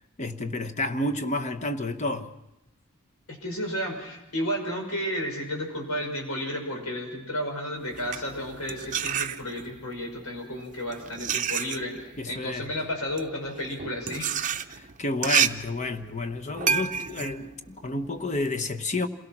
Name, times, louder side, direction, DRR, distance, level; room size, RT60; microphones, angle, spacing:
voice 1, 0.2-2.3 12.2-12.7 14.7-19.1, left 2 dB, 35° left, 1.1 m, -30 dB
voice 2, 3.3-14.3, equal, 90° left, 5.9 m, -32 dB
sound 1, 7.9-9.8 10.6-18.5, right 7 dB, 35° right, 0.7 m, -30 dB
27.5 x 17.0 x 6.1 m
head